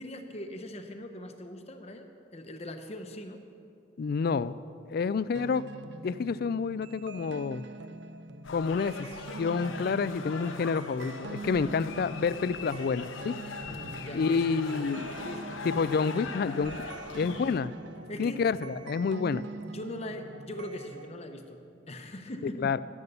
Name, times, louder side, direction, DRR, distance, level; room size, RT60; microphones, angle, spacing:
voice 1, 0.0-2.1 2.3-3.4 11.5-11.7 13.6-14.4 14.8-14.9 15.2-15.6 18.1-18.4 19.6-21.6 21.9-22.7, left 1 dB, 30° left, 6 dB, 0.8 m, -41 dB
voice 2, 4.0-4.5 4.9-5.6 6.0-7.6 8.5-9.1 9.4-13.4 14.1-15.1 15.6-16.8 17.2-17.8 18.2-19.4 22.4-22.8, left 5 dB, 50° left, 17 dB, 0.3 m, -29 dB
sound 1, 5.3-21.1, right 3 dB, 60° right, 0.5 m, -44 dB
sound 2, 8.4-17.6, left 3 dB, 75° left, 1.0 m, -41 dB
12.0 x 11.0 x 6.7 m, 2.5 s
head